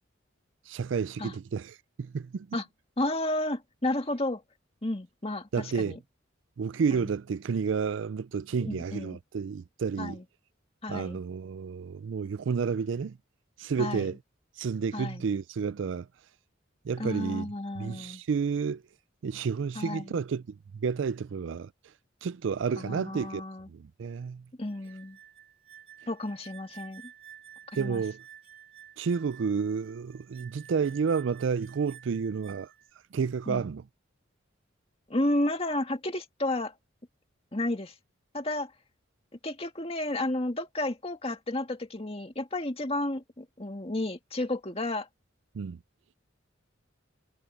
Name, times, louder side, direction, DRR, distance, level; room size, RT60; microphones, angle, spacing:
voice 1, 0.7-2.5 5.5-6.0 6.6-10.2 10.9-13.2 13.6-14.2 14.6-16.1 16.8-18.8 19.2-21.7 22.2-23.4 23.7-24.5 27.8-28.2 29.0-32.7 33.1-33.8 45.5-45.8, right 5 dB, 70° right, 0.4 m, -31 dB
voice 2, 3.0-4.4 4.8-6.0 8.6-9.2 10.0-10.2 10.8-11.2 13.8-14.1 14.9-15.2 17.0-18.2 19.8-20.2 22.8-23.7 24.6-25.2 26.1-27.1 27.7-28.0 33.5-33.7 35.1-36.7 37.5-37.9 38.3-38.7 39.4-45.1, left 1 dB, 30° left, 2.0 m, -32 dB
sound 1, 24.7-32.9, right 10 dB, 30° right, 3.3 m, -52 dB
head